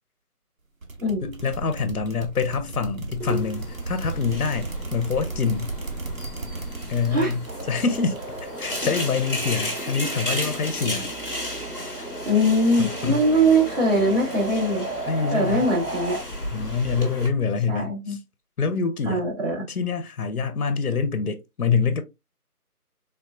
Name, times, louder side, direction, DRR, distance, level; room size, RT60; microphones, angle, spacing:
sound 1, 0.8-10.0, right 3 dB, 60° right, 0.8 m, -36 dB
voice 1, 1.2-5.7 6.9-8.2 8.6-11.1 12.8-13.2 15.1-15.6 16.5-18.2 18.6-19.2 19.7-22.0, left 5 dB, 70° left, 0.7 m, -26 dB
sound 2, 3.2-17.3, equal, 35° left, 1.0 m, -34 dB
sound 3, 7.5-16.2, right 2 dB, 85° right, 1.1 m, -35 dB
voice 2, 12.3-14.9 15.3-16.2 17.7-18.2 19.0-19.7, right 1 dB, 35° right, 1.9 m, -22 dB
3.6 x 2.3 x 2.4 m
figure-of-eight pair, 175°, 46 cm